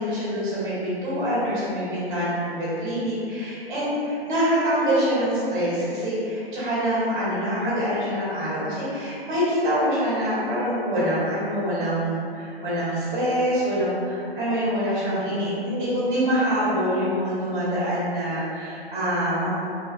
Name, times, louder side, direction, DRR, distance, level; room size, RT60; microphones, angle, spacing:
voice 1, 0.0-19.5, equal, 10° right, -10 dB, 0.5 m, -25 dB
2.4 x 2.1 x 2.5 m, 2.5 s
hypercardioid pair, 140°, 31 cm